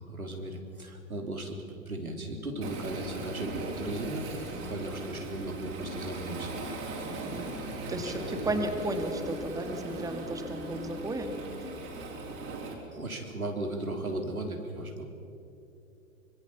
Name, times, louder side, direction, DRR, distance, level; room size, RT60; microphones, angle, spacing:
voice 1, 0.0-1.6 1.9-6.7 7.0-8.2 8.5-8.6 12.9-15.1, right 2 dB, 85° right, 3 dB, 3.7 m, -37 dB
sound 1, 2.2-12.3, left 3 dB, 45° left, 5.2 m, -45 dB
Waves surf, 2.6-12.7, right 3 dB, 30° right, 4.6 m, -39 dB
voice 2, 7.9-11.3, right 2 dB, 10° right, 6 dB, 1.9 m, -34 dB
25.0 x 23.5 x 7.1 m, 2.9 s
figure-of-eight pair, 105°, 42 cm